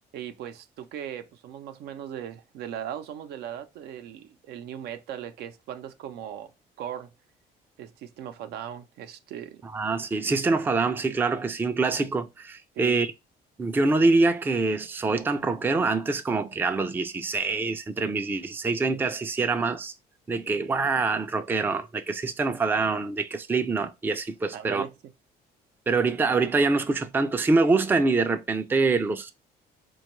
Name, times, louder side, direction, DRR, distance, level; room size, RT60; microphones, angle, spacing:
voice 1, 0.1-6.5 6.8-7.1 7.8-9.6 12.7-13.0 24.5-25.1, right 10 dB, 75° right, 0.5 m, -38 dB
voice 2, 9.7-13.1 13.6-19.9 20.3-24.8 25.9-29.3, right 3 dB, 10° right, 0.4 m, -25 dB
4.3 x 2.3 x 3.0 m
cardioid pair, 110°, 17 cm